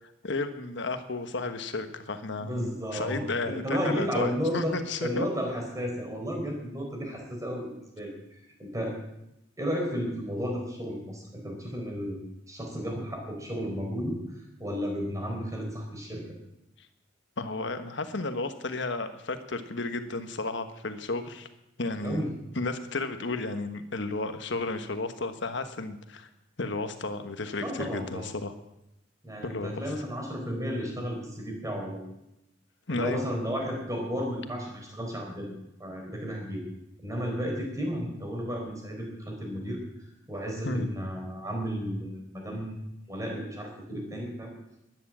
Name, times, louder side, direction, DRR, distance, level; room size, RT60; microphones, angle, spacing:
voice 1, 0.2-5.3 17.4-21.5 21.8-22.2 22.5-26.3 26.6-28.5 29.4-29.8 32.9-33.2 40.6-40.9, left 3 dB, 65° left, 9 dB, 1.3 m, -33 dB
voice 2, 2.4-4.8 5.0-7.7 8.0-8.1 8.7-8.9 9.6-16.2 22.0-22.3 27.6-28.2 29.2-32.0 32.9-35.5 35.8-36.6 37.0-39.8 40.3-42.7 43.1-44.5, equal, 15° right, 0 dB, 4.3 m, -33 dB
12.5 x 11.0 x 7.4 m, 0.87 s
head